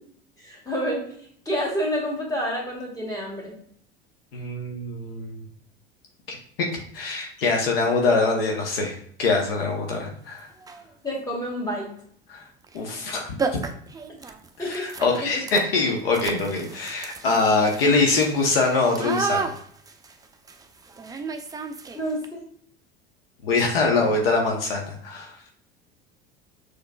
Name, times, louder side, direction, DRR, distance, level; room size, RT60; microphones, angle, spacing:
voice 1, 0.4-1.1 1.5-3.5 11.0-11.9 14.6-14.8 15.2-15.4 21.9-22.4, equal, 10° left, -2 dB, 1.8 m, -28 dB
voice 2, 4.3-5.4 6.3-6.4 6.9-10.5 12.3-12.4 12.7-13.6 14.6-19.5 23.4-25.3, left 3 dB, 70° left, 1 dB, 0.9 m, -23 dB
sound 1, 9.9-10.0 10.6-10.9 12.6-12.8 13.1-13.2 13.4-22.2, right 5 dB, 10° right, 0.4 m, -33 dB
6.4 x 3.2 x 2.3 m, 0.62 s
figure-of-eight pair, 70°, 30 cm